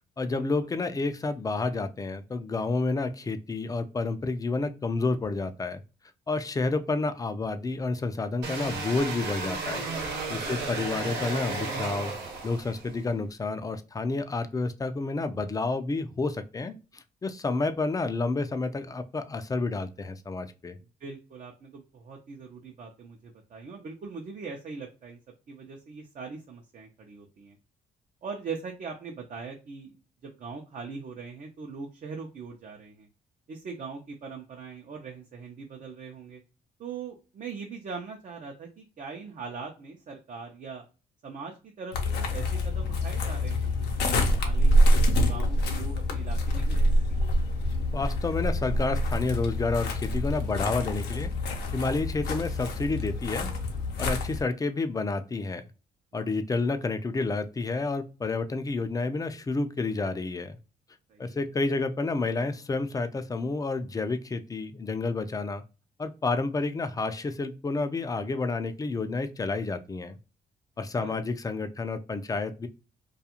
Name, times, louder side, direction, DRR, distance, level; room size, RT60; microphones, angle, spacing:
voice 1, 0.2-5.8 6.3-9.9 10.3-12.1 12.4-20.8 47.9-51.3 51.7-53.5 54.0-55.6 56.1-60.6 61.2-65.6 66.0-70.2 70.8-72.7, left 3 dB, 20° left, 0.4 m, -30 dB
sound 1, 8.4-13.0, right 3 dB, 90° right, 1.0 m, -33 dB
voice 2, 10.4-10.7 21.0-25.2 25.5-27.6 28.2-29.9 30.2-33.1 33.5-36.4 36.8-40.9 41.2-43.7 44.1-44.8 45.3-47.2 56.2-56.3 61.1-61.4 71.0-71.2, right 5 dB, 50° right, 0.6 m, -41 dB
sound 2, 41.9-54.4, equal, 85° left, 0.6 m, -26 dB
2.4 x 2.4 x 2.8 m
cardioid pair, 80°, 17 cm